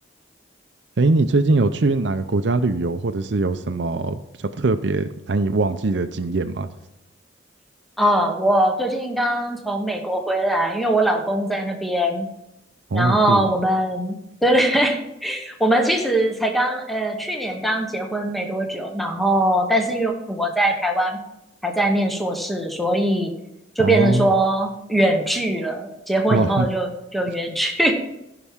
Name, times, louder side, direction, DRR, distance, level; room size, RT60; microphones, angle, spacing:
voice 1, 1.0-6.7 12.9-13.4 23.8-24.3 26.3-26.7, right 3 dB, 70° right, 9 dB, 0.6 m, -21 dB
voice 2, 8.0-12.3 12.9-21.2 21.6-23.3 23.8-27.9, right 1 dB, ahead, 2 dB, 1.1 m, -21 dB
15.5 x 5.9 x 3.6 m, 0.90 s
head